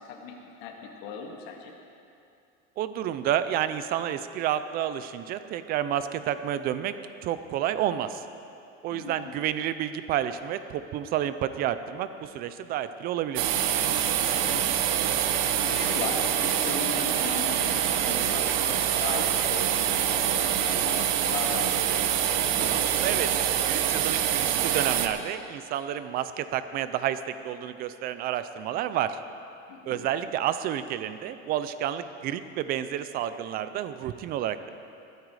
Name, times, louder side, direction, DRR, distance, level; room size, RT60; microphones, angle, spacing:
voice 1, 0.0-1.7 8.9-9.3 14.4-14.6 15.6-21.8 29.7-30.0, left 5 dB, 85° left, 0 dB, 2.2 m, -37 dB
voice 2, 2.8-6.9 7.2-8.2 8.8-13.5 22.7-29.2 29.9-34.7, right 11 dB, 30° right, 12 dB, 0.5 m, -30 dB
sound 1, 13.4-25.1, right 10 dB, 70° right, 1.0 m, -25 dB
21.5 x 9.0 x 4.9 m, 2.7 s
cardioid pair, 175°, 29 cm